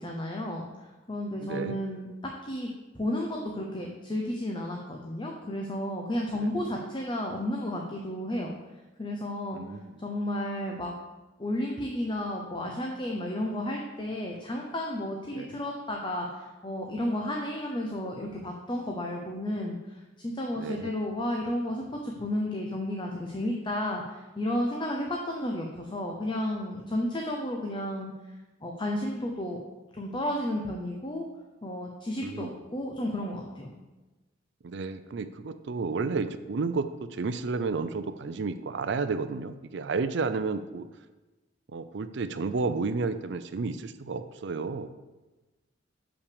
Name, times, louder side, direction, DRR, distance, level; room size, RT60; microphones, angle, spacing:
voice 1, 0.0-2.1 2.4-2.7 2.9-8.5 9.0-10.9 11.4-28.1 28.6-29.6 29.9-31.2 31.6-33.7, left 1 dB, 25° left, 1 dB, 0.8 m, -32 dB
voice 2, 1.4-1.8 6.4-6.5 9.5-9.9 15.3-15.6 20.5-20.9 32.2-32.5 34.6-40.9 41.7-44.9, right 4 dB, 65° right, 11 dB, 0.5 m, -32 dB
6.4 x 5.8 x 6.8 m, 1.1 s
head